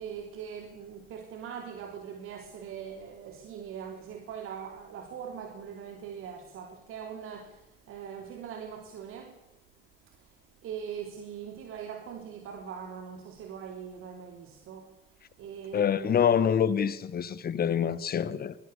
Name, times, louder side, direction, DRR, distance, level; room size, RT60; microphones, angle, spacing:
voice 1, 0.0-9.4 10.1-10.4 10.6-14.9 15.4-16.2, right 7 dB, 45° right, 3.4 m, -41 dB
voice 2, 15.7-18.6, left 8 dB, 30° left, 1.8 m, -26 dB
24.5 x 21.5 x 6.8 m
figure-of-eight pair, 70°, 29 cm